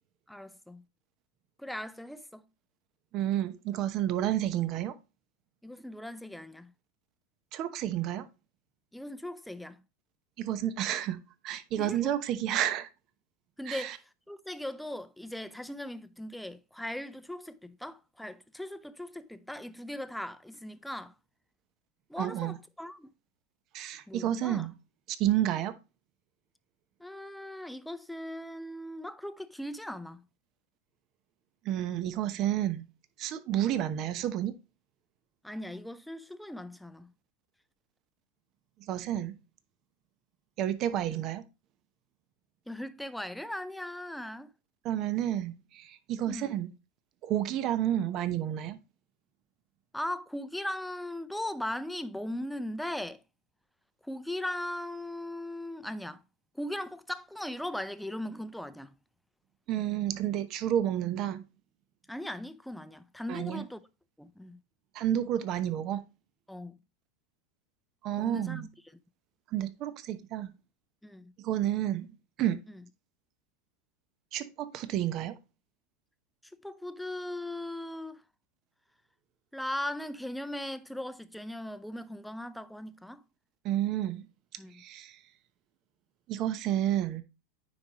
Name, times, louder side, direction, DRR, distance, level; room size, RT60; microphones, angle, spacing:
voice 1, 0.3-0.8 1.6-2.4 5.6-6.7 8.9-9.8 11.8-12.1 13.6-21.1 22.1-23.1 24.1-24.7 27.0-30.2 35.4-37.1 41.1-41.2 42.7-44.5 46.3-46.6 49.9-53.2 54.0-56.2 56.5-58.9 62.1-63.8 64.2-64.6 66.5-66.8 68.2-69.0 71.0-71.3 72.7-72.8 76.6-78.2 79.5-83.2 84.6-84.8, left 1 dB, ahead, 0.6 m, -39 dB
voice 2, 3.1-4.9 7.5-8.3 10.4-11.2 11.4-12.9 13.7-14.0 22.2-22.5 23.7-24.7 25.2-25.8 31.6-32.8 33.2-34.5 38.9-39.4 40.6-41.4 44.8-46.7 47.2-48.8 59.7-61.4 63.3-63.6 64.9-66.0 68.0-68.7 69.5-70.5 71.4-72.1 72.4-72.6 74.3-75.4 83.6-84.2 84.8-85.2 86.3-87.2, right 11 dB, 50° right, 0.9 m, -30 dB
9.4 x 4.8 x 3.0 m
hypercardioid pair, 95°, 0 cm